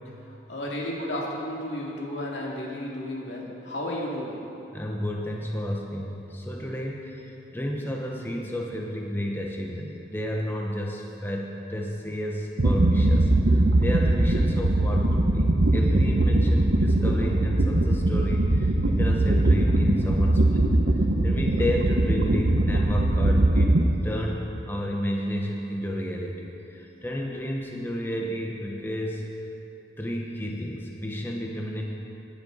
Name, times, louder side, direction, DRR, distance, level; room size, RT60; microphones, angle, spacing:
voice 1, 0.3-4.4, left 1 dB, 85° left, -3 dB, 2.3 m, -33 dB
voice 2, 4.7-20.7 21.2-29.3 30.0-31.8, equal, 10° left, -1 dB, 0.9 m, -32 dB
sound 1, 12.6-23.8, right 1 dB, 80° right, 0.9 m, -21 dB
17.0 x 10.0 x 4.0 m, 2.9 s
head